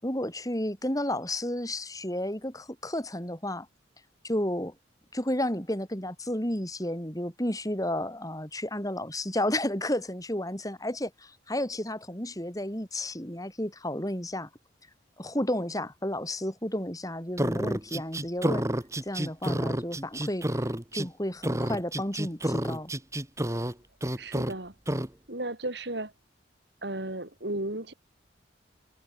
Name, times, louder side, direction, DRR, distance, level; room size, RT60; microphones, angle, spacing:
voice 1, 0.0-3.7 4.2-4.7 5.1-14.5 15.2-18.7 19.0-20.4 20.9-22.9, left 1 dB, 20° left, 6.9 m, -32 dB
sound 1, 17.4-21.1 21.4-23.7 24.0-24.5 24.9-25.1, right 1 dB, 15° right, 2.0 m, -29 dB
voice 2, 24.2-24.8 25.3-26.1 26.8-27.9, right 1 dB, 60° right, 4.5 m, -34 dB
head